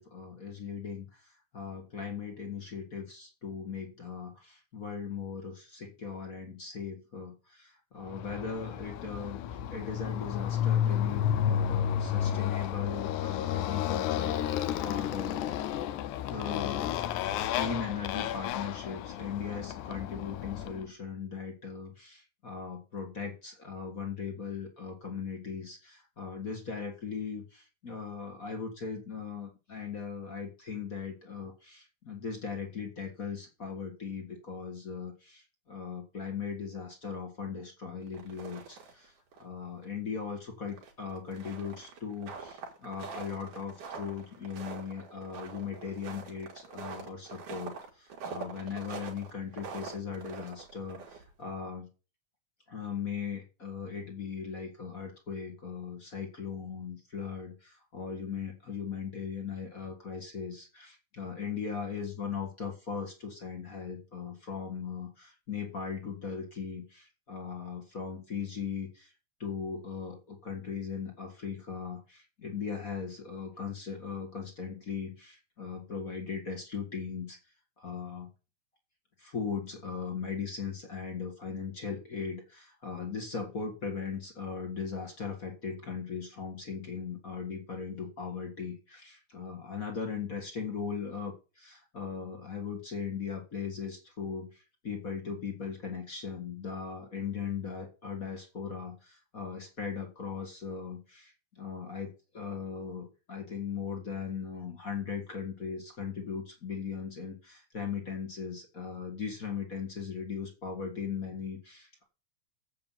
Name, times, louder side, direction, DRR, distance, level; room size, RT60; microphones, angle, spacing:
voice 1, 0.0-15.5 16.3-17.2 17.5-39.1 39.4-51.9 52.7-69.1 69.4-77.4 77.8-78.3 79.2-112.1, left 6 dB, 35° left, 3 dB, 1.7 m, -38 dB
Motorcycle, 8.1-20.8, left 10 dB, 85° left, 2.2 m, -32 dB
sound 1, 38.0-39.1 39.3-39.4 39.8-39.9 40.7-51.4, right 5 dB, 85° right, 3.7 m, -44 dB
7.8 x 7.1 x 7.3 m, 0.34 s
omnidirectional pair, 3.5 m